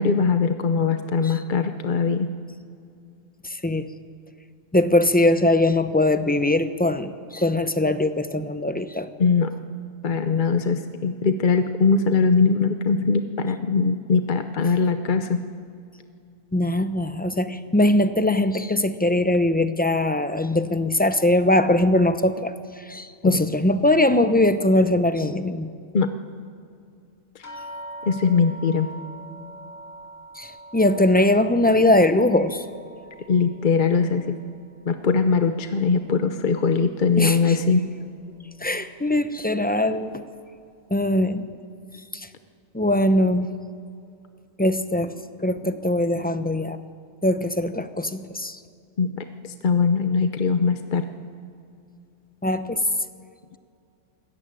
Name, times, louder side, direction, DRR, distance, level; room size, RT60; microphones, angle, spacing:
voice 1, 0.0-2.3 9.2-9.5 10.0-15.4 23.2-23.4 25.9-26.1 28.1-28.9 33.3-34.4 34.9-37.8 49.0-51.0, left 5 dB, 45° left, 8 dB, 0.8 m, -21 dB
voice 2, 3.4-3.9 4.7-9.1 16.5-25.7 30.4-32.6 37.2-37.6 38.6-40.2 40.9-41.5 42.1-42.3 42.7-43.5 44.6-45.1 45.4-46.8 47.2-48.6 52.4-52.8, left 1 dB, 10° left, 10 dB, 0.5 m, -21 dB
sound 1, 27.4-36.3 36.6-37.4 38.2-38.3 38.7-38.9, right 1 dB, 75° left, 3.0 m, -44 dB
23.0 x 14.0 x 9.1 m, 2.4 s
omnidirectional pair, 1.4 m